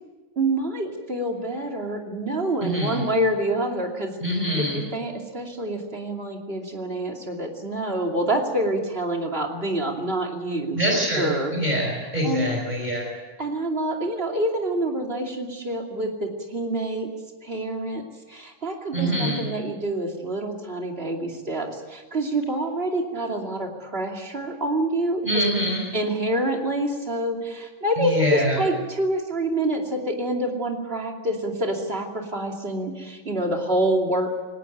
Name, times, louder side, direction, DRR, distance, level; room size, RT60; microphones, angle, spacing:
voice 1, 0.4-4.1 4.5-10.8 11.2-11.5 12.2-12.5 13.4-17.1 17.4-18.0 18.3-25.4 25.9-34.3, right 1 dB, 50° right, 2 dB, 2.9 m, -27 dB
voice 2, 2.6-3.0 4.2-4.8 10.7-13.1 18.9-19.4 25.2-25.9 28.0-28.6, equal, 35° right, -1 dB, 5.1 m, -24 dB
19.0 x 19.0 x 9.2 m, 1.3 s
omnidirectional pair, 1.3 m